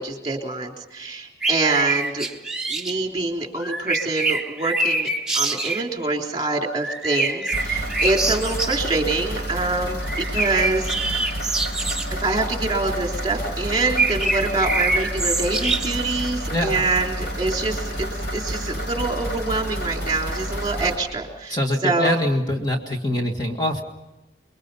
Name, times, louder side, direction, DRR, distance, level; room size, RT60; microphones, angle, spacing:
voice 1, 0.0-2.2 2.7-5.1 5.3-11.3 12.1-22.2, right 3 dB, 25° right, 1 dB, 3.4 m, -25 dB
sound 1, 1.4-2.9 3.6-5.9 6.7-8.8 10.0-12.1 13.7-16.2, right 2 dB, 5° right, 1.3 m, -25 dB
sound 2, 7.5-21.0, equal, 65° left, 6.2 m, -30 dB
voice 2, 16.5-16.9 21.5-23.8, left 1 dB, 25° left, 2 dB, 1.8 m, -24 dB
29.5 x 22.0 x 5.5 m, 1.0 s
head